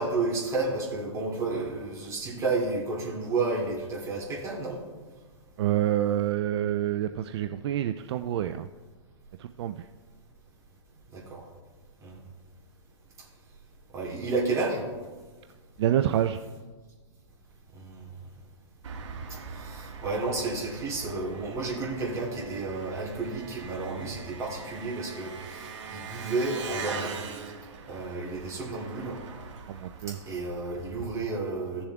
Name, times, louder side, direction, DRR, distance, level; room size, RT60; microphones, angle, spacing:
voice 1, 0.0-4.8 11.1-11.4 12.0-12.2 13.9-14.8 17.7-18.1 19.3-27.1 27.9-29.2 30.1-31.8, right 3 dB, 20° right, -4 dB, 2.6 m, -31 dB
voice 2, 5.6-8.7 9.4-9.8 15.8-16.4 29.7-30.2, right 11 dB, 55° right, 9 dB, 0.4 m, -27 dB
Engine, 18.8-31.0, right 5 dB, 75° right, 1.4 m, -42 dB
16.0 x 7.0 x 2.4 m, 1.4 s
hypercardioid pair, 135°, 16 cm